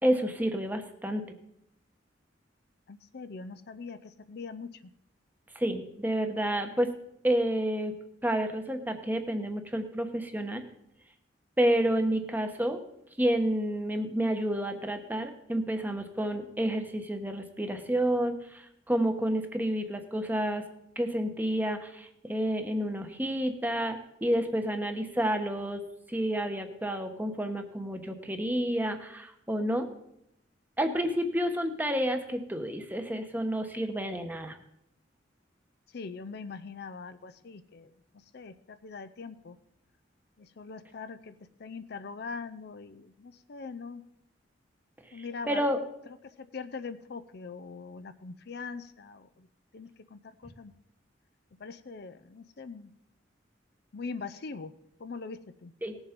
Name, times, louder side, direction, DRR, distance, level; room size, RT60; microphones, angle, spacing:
voice 1, 0.0-1.3 5.5-6.9 7.2-7.9 8.2-10.6 11.6-12.8 13.2-20.6 21.0-25.8 26.1-29.9 30.8-34.6 45.5-45.8 55.8-56.0, right 1 dB, 10° right, 6 dB, 1.1 m, -29 dB
voice 2, 2.9-4.9 35.9-37.9 38.3-39.6 40.4-41.3 41.6-44.0 45.1-45.7 46.2-49.5 49.7-50.7 51.6-52.9 53.9-54.7 55.0-55.7, left 4 dB, 60° left, 10 dB, 0.6 m, -42 dB
18.0 x 7.2 x 5.1 m, 0.79 s
head